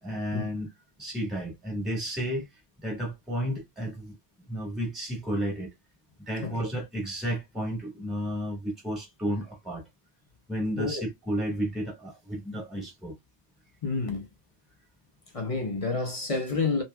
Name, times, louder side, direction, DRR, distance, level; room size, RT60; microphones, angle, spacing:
voice 1, 0.0-0.7 1.0-2.5 2.8-4.2 4.5-5.7 6.2-9.8 10.5-13.1, equal, ahead, 1.3 m, -32 dB
voice 2, 6.4-6.8 10.8-11.0 13.8-14.3 15.3-16.8, left 4 dB, 35° left, 0.8 m, -29 dB
3.0 x 2.9 x 2.3 m
omnidirectional pair, 1.1 m